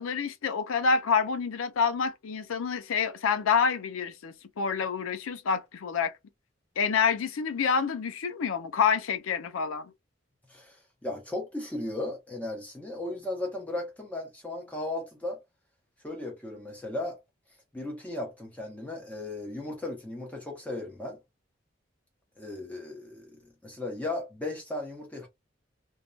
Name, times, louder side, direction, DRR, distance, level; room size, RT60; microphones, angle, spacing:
voice 1, 0.0-6.1 6.8-9.9, left 6 dB, 90° left, 0.5 m, -27 dB
voice 2, 10.5-15.4 16.0-17.2 17.7-21.2 22.4-25.3, left 2 dB, 5° left, 0.8 m, -36 dB
2.6 x 2.2 x 2.3 m
head